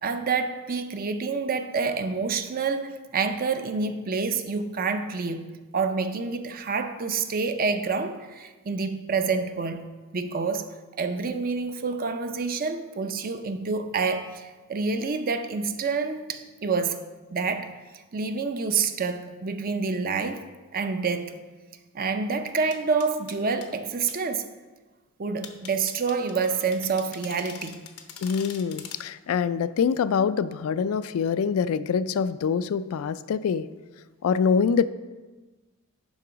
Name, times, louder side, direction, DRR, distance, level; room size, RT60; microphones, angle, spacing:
voice 1, 0.0-5.5 5.7-9.8 10.1-10.7 11.0-17.0 17.3-17.7 18.1-20.5 20.7-21.3 21.9-24.5 25.2-27.8, right 4 dB, 40° right, 8 dB, 0.5 m, -28 dB
sound 1, 22.7-23.7 24.1-24.2 25.4-29.0, left 8 dB, 90° left, 0.8 m, -43 dB
voice 2, 28.2-33.7 34.2-34.8, left 6 dB, 70° left, 14 dB, 0.3 m, -25 dB
11.5 x 3.8 x 5.0 m, 1.3 s
head